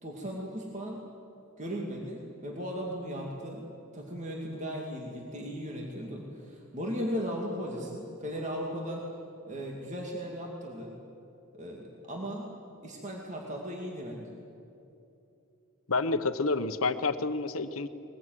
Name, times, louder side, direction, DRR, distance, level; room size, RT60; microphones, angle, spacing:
voice 1, 0.0-1.0 1.6-3.6 3.9-9.0 9.5-10.9 11.5-12.5 12.8-14.4, equal, 35° right, -1 dB, 2.5 m, -37 dB
voice 2, 15.9-17.9, left 3 dB, 90° left, 11 dB, 1.1 m, -29 dB
21.5 x 20.5 x 9.4 m, 2.8 s
head